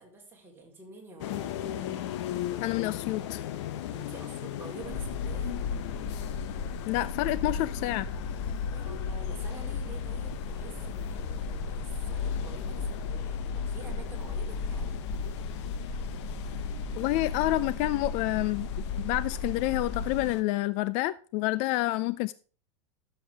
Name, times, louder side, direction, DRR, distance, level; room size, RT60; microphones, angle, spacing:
voice 1, 0.0-1.6 3.9-5.6 8.7-15.0, right 3 dB, 15° right, 4.2 m, -48 dB
sound 1, 1.2-20.4, left 12 dB, 65° left, 1.2 m, -39 dB
voice 2, 2.6-3.4 6.8-8.1 17.0-22.3, left 17 dB, 45° left, 0.5 m, -28 dB
sound 2, 4.8-20.3, left 4 dB, 20° left, 2.0 m, -35 dB
12.5 x 7.5 x 3.5 m
supercardioid pair, 125°, 16 cm